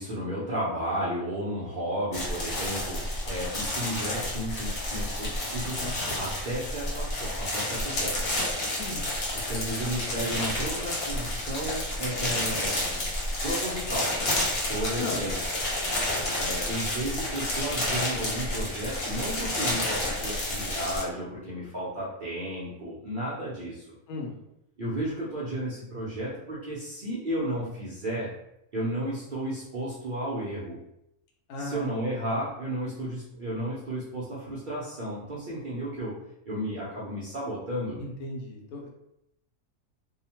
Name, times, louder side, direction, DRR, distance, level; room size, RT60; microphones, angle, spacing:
voice 1, 0.0-8.2 9.3-13.1 13.4-14.1 14.7-15.4 16.4-23.9 24.8-28.3 28.7-30.8 31.6-36.2 36.4-38.0, right 1 dB, 80° right, -8 dB, 0.4 m, -33 dB
sound 1, 2.1-21.0, left 1 dB, 50° left, 0.9 m, -30 dB
voice 2, 5.8-6.2 8.8-9.0 15.0-15.2 24.1-24.3 31.5-32.0 32.2-32.4 38.0-38.9, left 2 dB, 75° left, 0 dB, 1.0 m, -36 dB
2.7 x 2.1 x 2.8 m, 0.81 s
omnidirectional pair, 1.6 m